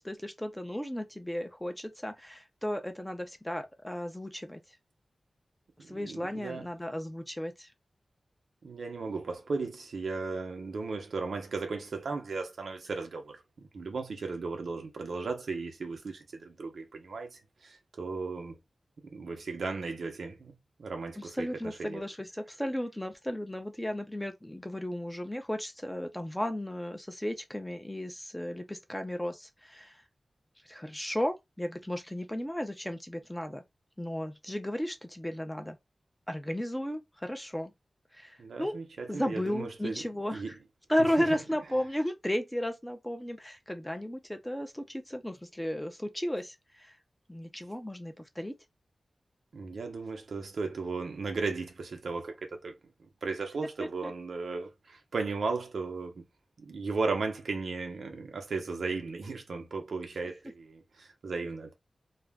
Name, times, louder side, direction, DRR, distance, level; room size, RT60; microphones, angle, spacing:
voice 1, 0.0-4.6 5.9-7.7 21.4-30.0 30.7-33.6 34.0-35.8 36.3-37.7 38.1-38.8 39.1-40.5 40.9-46.9 47.3-48.5 54.0-54.1, left 1 dB, 10° left, 0.5 m, -34 dB
voice 2, 5.8-6.7 8.6-18.6 19.1-22.0 38.4-40.6 41.0-41.4 49.5-52.7 53.0-56.2 56.6-61.7, right 4 dB, 90° right, 0.7 m, -36 dB
2.4 x 2.1 x 3.4 m
wide cardioid pair, 120°, 0 cm